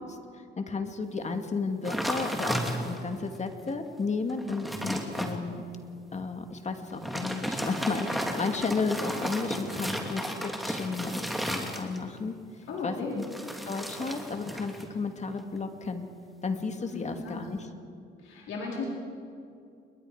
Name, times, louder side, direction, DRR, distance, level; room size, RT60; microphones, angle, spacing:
voice 1, 0.0-5.6 6.1-12.3 12.8-13.3 13.7-16.1 16.4-17.7, left 4 dB, 35° left, 5 dB, 2.4 m, -33 dB
sound 1, 1.8-3.2 3.7-3.8 4.2-5.4 6.9-12.2 13.2-14.9 15.2-15.6, equal, ahead, 2.9 m, -33 dB
voice 2, 12.7-13.2 16.9-17.5 18.2-18.8, left 4 dB, 80° left, -4 dB, 4.6 m, -36 dB
29.5 x 22.0 x 5.1 m, 2.4 s
cardioid pair, 90°, 20 cm